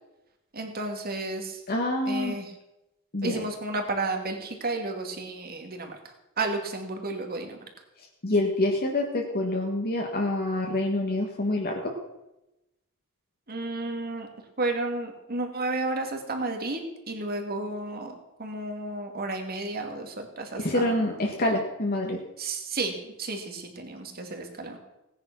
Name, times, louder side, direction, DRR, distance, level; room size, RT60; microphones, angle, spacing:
voice 1, 0.5-1.6 2.1-2.5 3.2-6.0 6.4-7.6 13.5-14.3 14.6-16.8 17.1-21.0 22.4-24.8, right 2 dB, 45° right, 4 dB, 2.4 m, -32 dB
voice 2, 1.7-2.4 3.1-3.4 8.2-11.9 20.6-22.2, left 1 dB, 45° left, 1 dB, 1.6 m, -26 dB
18.0 x 9.7 x 6.1 m, 0.94 s
head